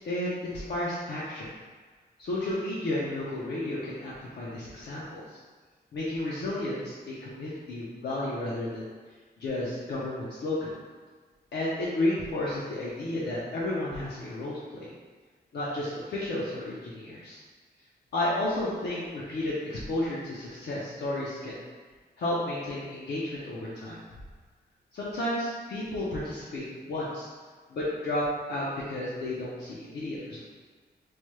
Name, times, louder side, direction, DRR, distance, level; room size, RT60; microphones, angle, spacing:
voice 1, 0.0-1.5 2.2-5.4 5.9-8.9 9.4-10.7 11.5-14.9 15.5-17.4 18.1-21.6 22.2-24.0 24.9-27.3 27.7-28.2 28.5-30.4, left 1 dB, 75° left, -7 dB, 0.6 m, -32 dB
3.1 x 2.2 x 3.1 m, 1.4 s
wide cardioid pair, 170°, 18 cm